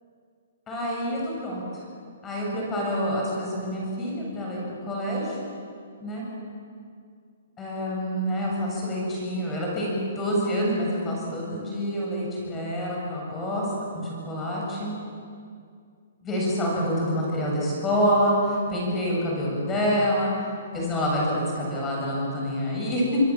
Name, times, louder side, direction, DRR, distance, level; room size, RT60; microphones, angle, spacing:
voice 1, 0.7-1.6 2.2-5.4 6.0-6.2 7.6-13.7 13.9-14.9 16.2-20.3 20.7-23.2, equal, 15° left, -3 dB, 7.7 m, -27 dB
26.5 x 23.5 x 7.6 m, 2.3 s
hypercardioid pair, 160°, 0 cm